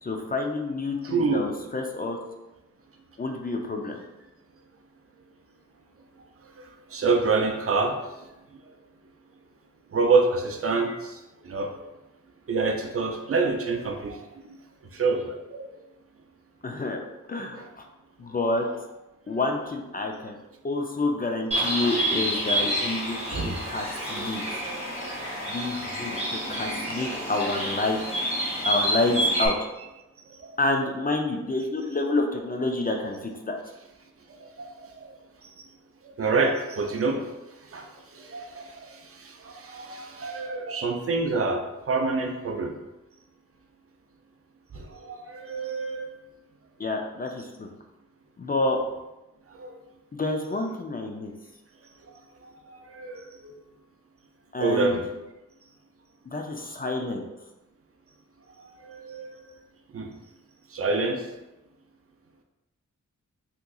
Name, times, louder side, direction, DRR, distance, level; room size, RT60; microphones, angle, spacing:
voice 1, 0.0-2.2 3.2-4.0 16.6-17.0 17.3-17.8 18.2-18.7 19.3-20.4 20.6-24.4 25.5-26.1 26.5-28.0 28.7-29.5 30.6-33.6 46.8-47.7 48.4-48.8 50.1-51.3 54.5-55.0 56.3-57.3, left 2 dB, 30° left, 2 dB, 0.4 m, -28 dB
voice 2, 1.0-1.5 6.6-8.0 9.9-11.7 12.5-14.3 14.9-15.7 17.6-17.7 23.3-23.6 24.6-25.2 26.6-26.7 30.4-30.6 34.4-35.1 36.2-37.2 37.7-42.7 44.7-46.1 49.5-49.7 52.4-53.5 54.6-55.0 58.6-59.4 59.9-60.1 60.7-61.2, right 3 dB, 45° right, 3 dB, 0.5 m, -27 dB
Bird, 21.5-29.5, equal, 20° right, 1.2 m, -28 dB
3.5 x 2.9 x 2.3 m, 0.98 s
wide cardioid pair, 80°, 31 cm